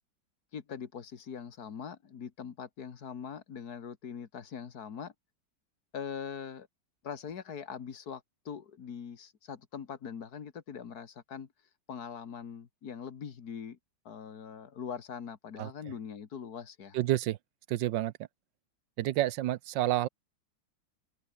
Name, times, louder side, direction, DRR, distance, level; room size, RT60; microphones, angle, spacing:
voice 1, 0.5-5.1 5.9-6.7 7.0-11.5 11.9-13.8 14.1-17.0, left 7 dB, 55° left, 2.1 m, -42 dB
voice 2, 16.9-17.4 17.7-18.1 19.0-20.1, right 14 dB, 80° right, 1.4 m, -29 dB
open air
omnidirectional pair, 2.0 m